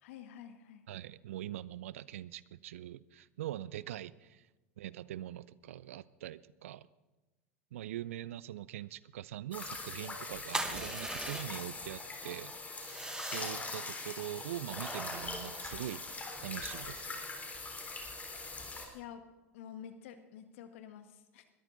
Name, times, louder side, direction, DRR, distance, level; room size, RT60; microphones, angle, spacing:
voice 1, 0.0-0.8 18.9-19.2 19.5-21.5, left 9 dB, 70° left, 8 dB, 1.6 m, -49 dB
voice 2, 0.9-4.4 4.8-6.9 7.7-16.0 16.4-17.2, right 13 dB, 75° right, 20 dB, 0.5 m, -43 dB
sound 1, 9.5-18.8, left 3 dB, 20° left, 3.6 m, -42 dB
sound 2, 10.5-11.8 12.8-13.7 14.6-16.3, right 2 dB, 10° right, 1.3 m, -41 dB
21.0 x 13.5 x 4.0 m, 1.1 s
hypercardioid pair, 85°, 7 cm